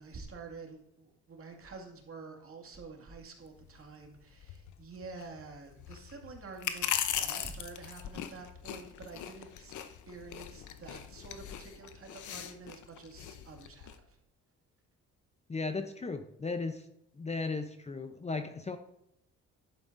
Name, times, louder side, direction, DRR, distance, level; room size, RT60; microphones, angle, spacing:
voice 1, 0.0-9.7 10.1-14.2, right 4 dB, 45° right, 2 dB, 2.2 m, -48 dB
sound 1, 3.4-14.0, left 10 dB, 75° left, 0.8 m, -40 dB
voice 2, 15.5-16.9 17.1-18.8, left 3 dB, 20° left, 8 dB, 0.7 m, -36 dB
11.0 x 8.8 x 2.6 m, 0.80 s
cardioid pair, 90°, 30 cm